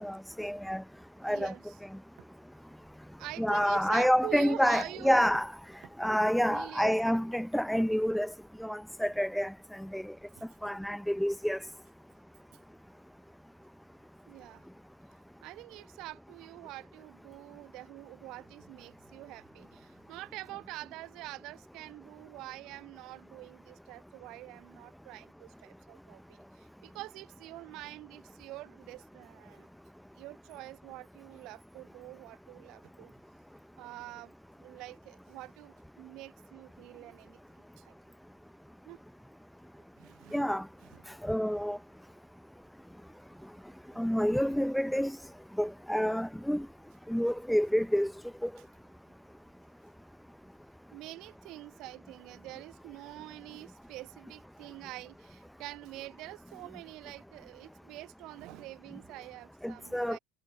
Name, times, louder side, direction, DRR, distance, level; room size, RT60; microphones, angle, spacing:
voice 1, 0.0-0.8 1.2-1.5 3.4-5.5 6.0-8.3 8.6-10.0 10.6-11.6 40.3-40.6 41.2-41.8 44.0-45.2 45.6-46.7 47.1-48.1 48.4-48.5 59.6-60.2, equal, ahead, 0.6 m, -28 dB
voice 2, 1.3-1.7 3.2-5.3 6.5-7.2 10.3-10.4 12.5-12.6 14.3-14.6 15.4-29.7 30.1-33.1 33.8-37.9 38.8-39.0 40.0-40.5 40.9-41.0 43.9-44.0 44.3-44.6 50.9-60.2, right 19 dB, 50° right, 1.1 m, -46 dB
figure-of-eight pair, 70°, 0 cm